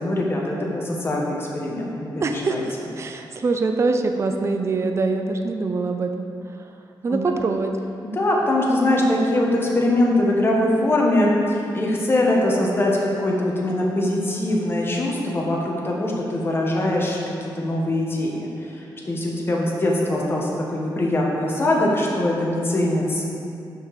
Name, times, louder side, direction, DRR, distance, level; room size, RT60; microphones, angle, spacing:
voice 1, 0.0-2.6 7.1-7.2 8.1-23.2, left 1 dB, 30° left, -2 dB, 1.3 m, -22 dB
voice 2, 2.2-6.3 7.0-7.8, right 3 dB, 35° right, 5 dB, 0.5 m, -24 dB
6.4 x 5.3 x 6.6 m, 2.6 s
wide cardioid pair, 140°, 8 cm